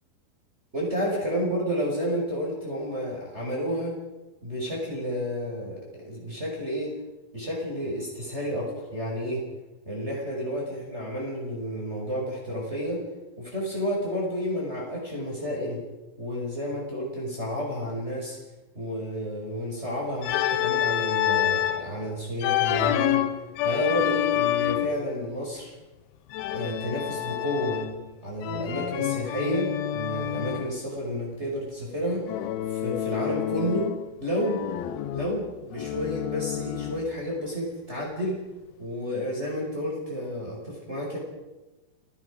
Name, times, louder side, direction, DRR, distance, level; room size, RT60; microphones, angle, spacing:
voice 1, 0.7-4.0 4.4-6.9 7.3-9.4 9.9-13.1 13.4-15.8 16.2-18.4 18.7-23.2 23.6-25.7 26.5-27.8 28.2-32.2 32.7-33.9 34.2-34.6 35.1-38.4 38.8-41.2, equal, 15° right, -3 dB, 5.6 m, -31 dB
Organ, 20.2-21.9 22.4-25.1 26.3-28.1 28.4-30.7 32.3-34.1 34.4-37.1, left 12 dB, 80° left, 2.8 m, -28 dB
28.5 x 18.0 x 5.1 m, 1.1 s
omnidirectional pair, 4.4 m